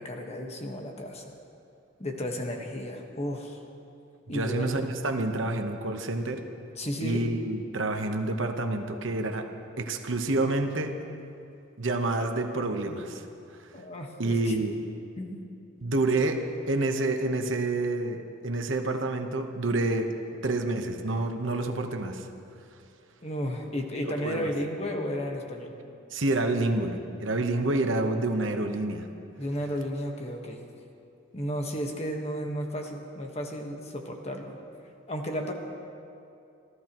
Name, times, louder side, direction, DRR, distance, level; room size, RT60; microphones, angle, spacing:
voice 1, 0.0-1.3 2.0-3.6 4.3-4.8 6.8-7.3 13.7-14.6 15.2-15.4 23.2-25.8 29.4-30.6 31.3-34.6 35.1-35.5, equal, 30° left, 2 dB, 1.4 m, -33 dB
voice 2, 4.3-6.4 7.0-9.5 9.8-10.9 11.8-13.3 14.2-14.8 15.8-16.4 16.7-20.1 20.4-22.3 24.0-24.5 26.1-29.1, right 2 dB, 70° right, 5 dB, 1.1 m, -28 dB
27.0 x 14.5 x 3.1 m, 2.6 s
head